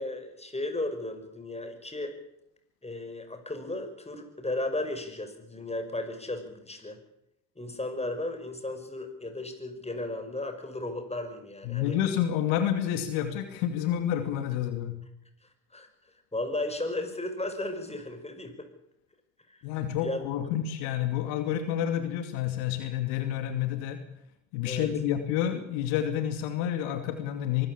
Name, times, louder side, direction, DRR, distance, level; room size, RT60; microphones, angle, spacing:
voice 1, 0.0-2.1 2.8-7.0 7.6-12.0 15.7-15.9 16.3-18.6 19.5-19.6 20.0-20.2 24.7-24.9, left 2 dB, 15° left, 7 dB, 6.0 m, -35 dB
voice 2, 11.6-15.0 19.6-24.0 24.5-27.7, left 10 dB, 75° left, 7 dB, 2.6 m, -29 dB
24.0 x 15.0 x 8.7 m, 0.79 s
hypercardioid pair, 60°, 48 cm